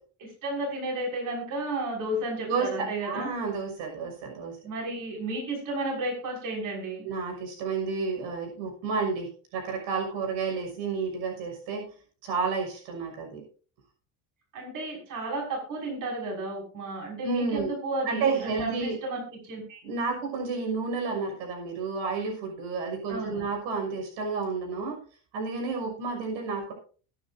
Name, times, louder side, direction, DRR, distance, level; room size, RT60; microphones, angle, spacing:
voice 1, 0.2-3.3 4.6-7.0 14.5-19.8 23.1-23.5, right 2 dB, 45° right, -1 dB, 6.4 m, -33 dB
voice 2, 2.5-4.6 7.0-11.9 12.2-13.4 17.2-17.7 18.0-19.0 19.8-25.0 25.3-26.7, right 4 dB, 75° right, 2 dB, 6.3 m, -31 dB
22.0 x 10.5 x 2.8 m, 0.40 s
cardioid pair, 155°, 44 cm